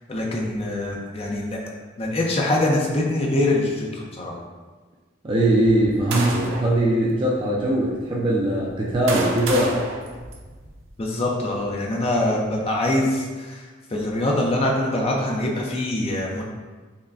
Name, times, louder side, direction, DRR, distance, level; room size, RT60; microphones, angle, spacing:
voice 1, 0.1-1.6 2.0-4.3 11.0-16.4, left 1 dB, 30° left, -1 dB, 0.5 m, -24 dB
voice 2, 5.2-9.8, right 1 dB, 25° right, -5 dB, 0.4 m, -21 dB
sound 1, 5.6-6.8 7.5-7.7 8.6-10.9, right 2 dB, 80° right, 0.6 m, -30 dB
5.4 x 2.2 x 2.5 m, 1.4 s
head